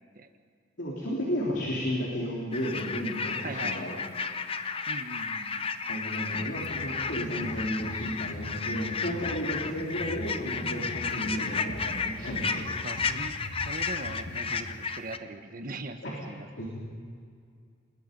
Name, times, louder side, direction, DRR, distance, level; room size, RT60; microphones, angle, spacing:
voice 1, 0.8-4.0 5.9-12.6 16.0-16.2 16.6-16.7, equal, 60° left, -4 dB, 3.6 m, -33 dB
sound 1, 2.5-15.2, left 5 dB, 30° left, 0.7 m, -33 dB
voice 2, 3.4-4.1 4.9-5.8 12.2-16.7, right 2 dB, 45° right, 7 dB, 1.2 m, -41 dB
Drum kit, 6.2-14.4, equal, 90° left, 7.0 m, -42 dB
27.5 x 21.5 x 5.4 m, 2.2 s
head